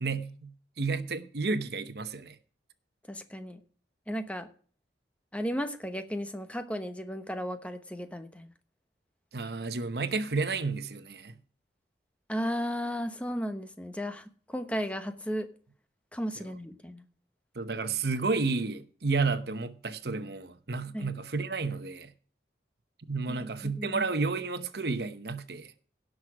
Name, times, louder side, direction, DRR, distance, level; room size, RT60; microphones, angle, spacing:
voice 1, 0.0-2.4 9.3-11.4 16.4-16.5 17.5-22.1 23.1-25.7, right 4 dB, 65° right, 0.9 m, -31 dB
voice 2, 3.1-3.6 4.1-4.5 5.3-8.5 12.3-15.5 16.1-17.0 20.9-21.1 23.3-24.0, equal, 5° left, 1.0 m, -35 dB
17.0 x 6.3 x 4.9 m
head